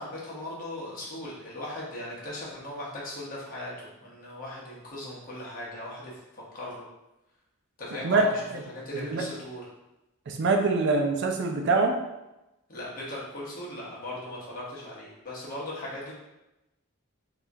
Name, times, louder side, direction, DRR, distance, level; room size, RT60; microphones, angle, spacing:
voice 1, 0.0-6.8 7.8-9.7 12.7-16.1, left 1 dB, 40° left, -5 dB, 0.9 m, -38 dB
voice 2, 8.0-8.6 9.0-9.2 10.3-12.0, right 3 dB, 55° right, 2 dB, 0.4 m, -24 dB
3.4 x 2.3 x 2.6 m, 0.96 s
head